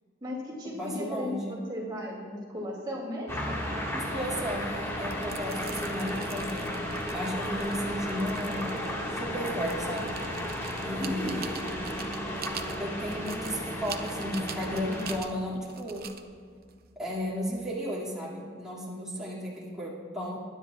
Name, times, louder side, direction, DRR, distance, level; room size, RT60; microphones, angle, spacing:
voice 1, 0.2-3.6 11.0-11.4, left 1 dB, 20° right, -4 dB, 2.2 m, -36 dB
voice 2, 0.8-1.6 3.9-6.7 7.1-8.7 9.1-10.1 10.8-11.6 12.8-16.1 17.0-20.4, equal, 5° right, -8 dB, 2.3 m, -34 dB
sound 1, 3.3-15.2, equal, 15° left, 1.7 m, -34 dB
sound 2, 5.0-17.7, right 7 dB, 50° right, 0.7 m, -45 dB
22.5 x 10.0 x 2.4 m, 2.2 s
head